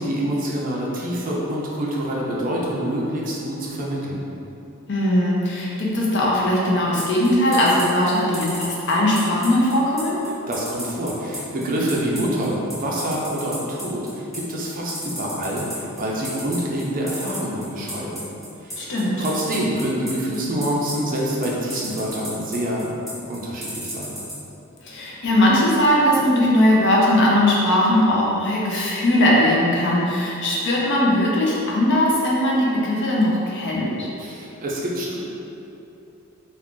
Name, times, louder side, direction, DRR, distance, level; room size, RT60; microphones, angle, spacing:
voice 1, 0.0-4.3 10.5-18.2 18.6-22.9 23.3-24.2 34.2-35.2, right 1 dB, 40° right, -4 dB, 0.4 m, -26 dB
voice 2, 4.9-10.2 18.8-19.2 24.8-34.1, left 1 dB, 55° left, -4 dB, 0.6 m, -19 dB
sound 1, 7.0-24.3, equal, ahead, 0.7 m, -33 dB
2.3 x 2.3 x 3.6 m, 2.8 s
head